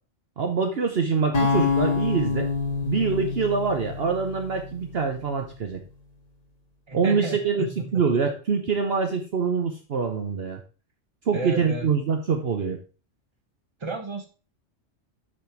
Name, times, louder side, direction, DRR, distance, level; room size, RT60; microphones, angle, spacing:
voice 1, 0.4-2.5 2.8-5.8 6.9-10.6 11.3-12.8, right 5 dB, 55° right, 4 dB, 1.1 m, -25 dB
sound 1, 1.3-5.5, left 4 dB, 30° left, 1.7 m, -27 dB
voice 2, 6.9-8.2 11.3-11.9 13.8-14.3, right 3 dB, 25° right, 4 dB, 1.3 m, -33 dB
8.7 x 4.4 x 4.4 m, 0.36 s
omnidirectional pair, 1.3 m